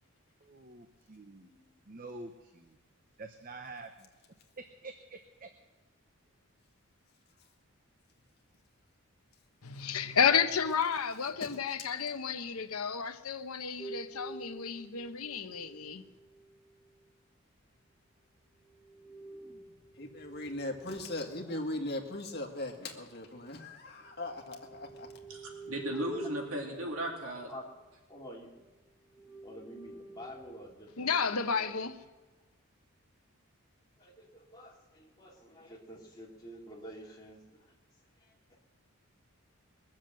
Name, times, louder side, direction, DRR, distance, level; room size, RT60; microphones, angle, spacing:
voice 1, 0.4-1.5 1.9-2.8 3.2-4.1 4.8-5.5, right 3 dB, 40° right, 0.8 m, -47 dB
voice 2, 9.6-16.0 31.0-32.0, left 6 dB, 80° left, 1.0 m, -31 dB
sound 1, 13.8-17.0 18.7-23.8 24.2-28.6 29.0-30.8 31.6-32.1, right 2 dB, 15° right, 1.6 m, -49 dB
voice 3, 20.0-25.1, left 1 dB, 45° left, 1.9 m, -39 dB
voice 4, 25.3-27.5, right 1 dB, 70° right, 2.5 m, -36 dB
voice 5, 28.1-28.7 29.4-31.9 34.0-37.7 38.2-38.6, equal, 15° left, 2.6 m, -49 dB
21.0 x 7.4 x 7.7 m
head